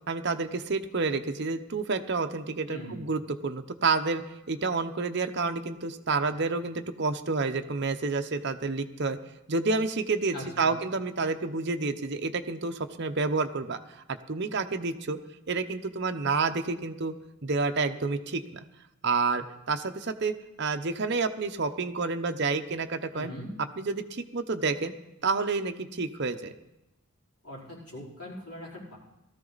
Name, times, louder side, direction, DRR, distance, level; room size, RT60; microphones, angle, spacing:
voice 1, 0.1-4.2 4.5-9.2 9.5-13.8 14.3-15.2 15.5-17.1 17.4-18.6 19.0-23.3 23.8-24.9 25.2-26.5, right 4 dB, 50° right, 7 dB, 0.8 m, -29 dB
voice 2, 2.7-3.0 10.3-10.7 23.1-23.5 27.4-29.0, equal, 85° left, -5 dB, 4.6 m, -41 dB
17.5 x 14.0 x 4.1 m, 0.92 s
head